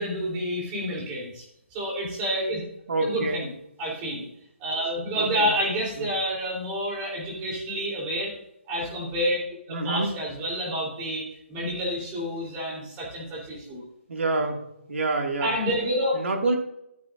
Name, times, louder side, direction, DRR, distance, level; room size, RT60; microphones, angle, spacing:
voice 1, 0.0-1.4 1.7-2.6 3.0-3.5 3.8-4.3 4.6-8.3 8.7-13.8 15.4-16.2, equal, 15° right, -3 dB, 3.5 m, -29 dB
voice 2, 2.9-3.4 5.1-5.5 6.0-6.1 9.7-10.1 14.1-15.5 16.1-16.6, right 2 dB, 70° right, 2 dB, 2.2 m, -27 dB
13.5 x 8.6 x 2.6 m, 0.81 s
hypercardioid pair, 165°, 7 cm